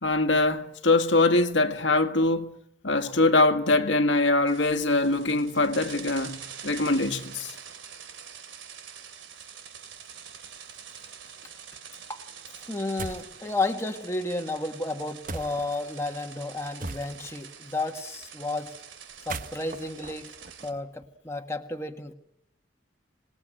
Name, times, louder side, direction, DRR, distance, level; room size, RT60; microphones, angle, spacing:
voice 1, 0.0-2.5 2.8-7.5, left 2 dB, 70° left, 1.9 m, -23 dB
sound 1, 4.5-20.7, right 8 dB, 80° right, 2.9 m, -45 dB
voice 2, 12.6-18.7 19.2-20.3 20.6-22.1, left 2 dB, 15° left, 1.6 m, -32 dB
sound 2, 13.0-13.4 15.3-15.8 16.8-17.4 19.1-21.1, right 3 dB, 45° right, 1.1 m, -39 dB
26.5 x 20.0 x 8.9 m
head